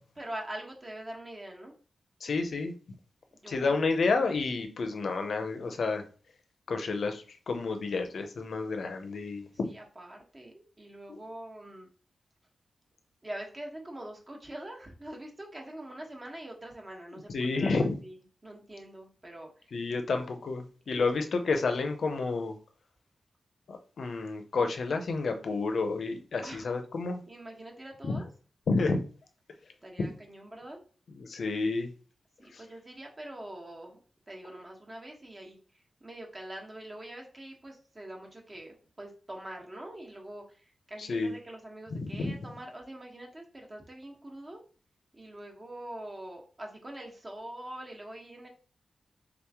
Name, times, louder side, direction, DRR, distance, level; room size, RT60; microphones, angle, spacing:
voice 1, 0.2-1.7 3.3-3.8 9.6-11.9 13.2-18.2 18.4-19.7 20.9-21.1 26.4-26.7 27.3-28.3 29.8-30.8 32.4-34.0 34.3-35.6 36.0-44.6 45.1-48.5, right 1 dB, 25° right, 1.1 m, -44 dB
voice 2, 2.2-2.7 3.5-6.0 6.7-9.7 11.1-11.2 17.1-18.0 19.7-22.6 23.7-27.2 28.0-28.2 28.7-29.0 30.0-30.1 31.2-31.9 32.5-32.6 41.0-41.3 41.9-42.4, left 3 dB, 65° left, 0.6 m, -30 dB
3.7 x 3.0 x 3.5 m
wide cardioid pair, 110°, 0 cm